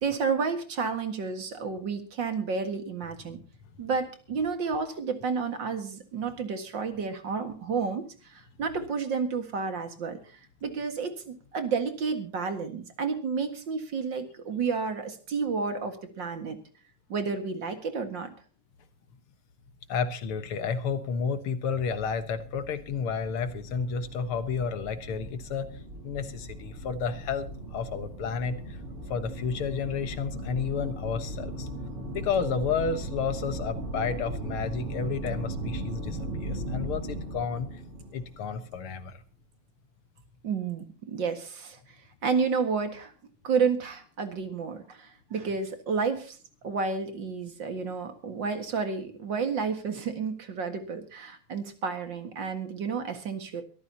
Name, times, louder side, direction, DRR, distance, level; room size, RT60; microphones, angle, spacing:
voice 1, 0.0-3.4 3.8-10.2 10.6-16.6 17.1-18.3 40.4-41.8 42.2-43.1 43.4-46.4 46.6-53.6, right 5 dB, 60° right, 6 dB, 2.4 m, -31 dB
voice 2, 19.9-25.7 26.0-28.6 29.1-31.7 32.1-37.8 38.1-39.2, left 6 dB, 85° left, 10 dB, 2.2 m, -31 dB
sound 1, 22.0-39.0, right 1 dB, 85° right, 6.2 m, -38 dB
22.5 x 14.0 x 2.9 m, 0.38 s
omnidirectional pair, 2.4 m